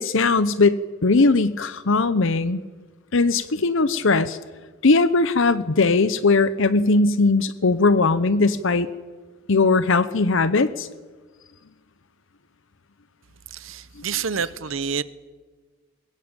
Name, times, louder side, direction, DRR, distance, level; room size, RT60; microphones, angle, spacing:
voice 1, 0.0-2.6 3.1-4.4 4.8-8.9 9.5-10.9, left 3 dB, 65° left, 0.8 m, -19 dB
voice 2, 13.5-15.0, right 6 dB, 65° right, 1.0 m, -28 dB
22.0 x 21.5 x 8.9 m
head